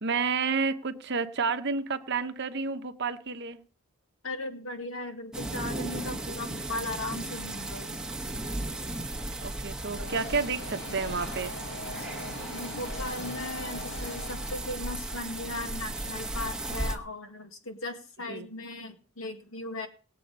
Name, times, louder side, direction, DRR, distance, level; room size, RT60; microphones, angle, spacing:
voice 1, 0.0-3.6 9.4-11.5 18.3-18.5, right 4 dB, 50° right, 9 dB, 0.9 m, -30 dB
voice 2, 4.2-8.0 10.0-10.1 12.5-19.9, left 2 dB, 70° left, 5 dB, 1.9 m, -37 dB
sound 1, 5.3-17.0, right 2 dB, 5° right, 1.2 m, -36 dB
sound 2, 9.9-15.1, left 1 dB, 50° left, 1.6 m, -41 dB
18.5 x 7.7 x 5.3 m, 0.39 s
head